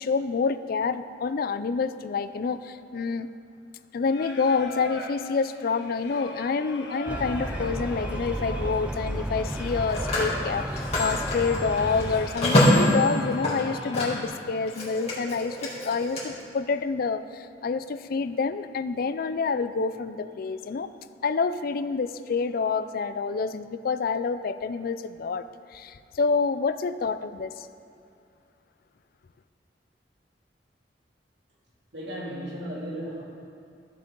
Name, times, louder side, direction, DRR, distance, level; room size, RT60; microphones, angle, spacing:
voice 1, 0.0-3.3 3.9-20.9 21.2-27.7, left 4 dB, 55° left, 13 dB, 0.4 m, -28 dB
Singing, 4.0-14.2, left 2 dB, 80° left, 1.3 m, -40 dB
sound 1, 7.1-12.3, right 1 dB, 5° right, 0.4 m, -33 dB
Telephone, 7.3-7.6 9.5-14.4 14.7-16.2, left 1 dB, 40° left, 2.6 m, -26 dB
voice 2, 31.9-33.2, equal, 80° right, -5 dB, 2.5 m, -35 dB
14.5 x 7.3 x 3.8 m, 2.5 s
head